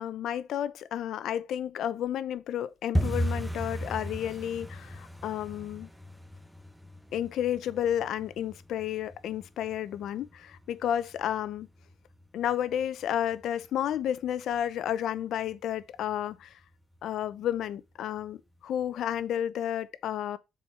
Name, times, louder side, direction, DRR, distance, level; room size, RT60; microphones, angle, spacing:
voice 1, 0.0-5.9 7.1-11.7 12.3-16.5 17.0-18.4 18.6-20.4, left 10 dB, 75° left, 0.8 m, -31 dB
sound 1, 2.9-13.7 13.9-14.6 14.9-15.2 15.4-15.8 16.1-16.2 16.7-17.3 17.6-17.7 18.2-18.3, equal, ahead, 0.9 m, -37 dB
7.1 x 4.7 x 4.7 m
cardioid pair, 90°, 0 cm